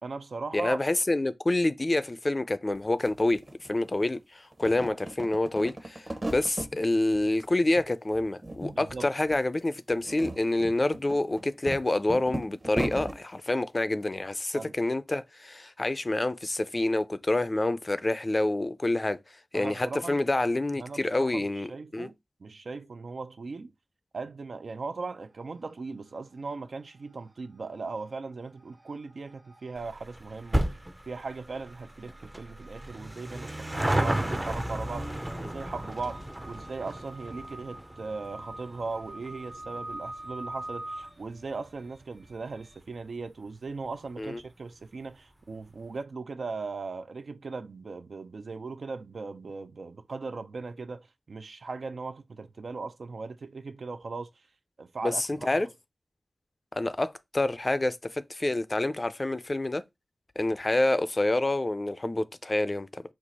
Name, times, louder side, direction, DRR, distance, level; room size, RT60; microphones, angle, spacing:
voice 1, 0.0-0.8 8.7-9.1 14.5-14.7 19.5-20.2 20.8-22.1 22.4-23.7 24.1-30.8 31.1-54.5 54.8-55.7, right 4 dB, 80° right, 0.5 m, -38 dB
voice 2, 0.5-19.2 19.5-22.1 44.2-44.4 55.0-55.7 56.7-59.8 60.4-63.0, left 2 dB, 35° left, 0.4 m, -27 dB
sound 1, 2.7-2.8 3.0-4.2 4.5-6.7 7.1-7.9 8.1-9.0 9.3-9.4 9.9-13.2, right 1 dB, 35° right, 0.9 m, -36 dB
sound 2, 25.2-25.9 26.2-42.8, right 1 dB, 55° right, 1.3 m, -47 dB
sound 3, 29.8-42.5 42.8-42.9 43.8-43.9 44.1-44.2 44.4-44.5, right 1 dB, 20° right, 0.5 m, -34 dB
4.5 x 2.4 x 4.0 m
wide cardioid pair, 70°, 0 cm